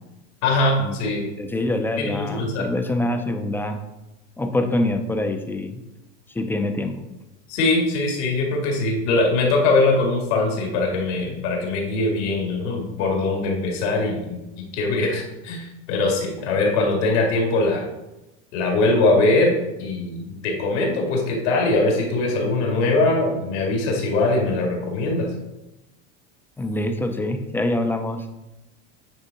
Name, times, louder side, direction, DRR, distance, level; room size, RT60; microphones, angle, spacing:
voice 1, 0.4-1.3 2.0-2.6 7.5-17.8 18.5-25.3, left 2 dB, 80° left, 0 dB, 2.2 m, -22 dB
voice 2, 1.4-3.8 4.4-5.8 6.3-7.1 26.6-28.3, left 1 dB, 5° left, 6 dB, 0.3 m, -25 dB
8.9 x 3.6 x 4.1 m, 0.96 s
supercardioid pair, 135°, 35 cm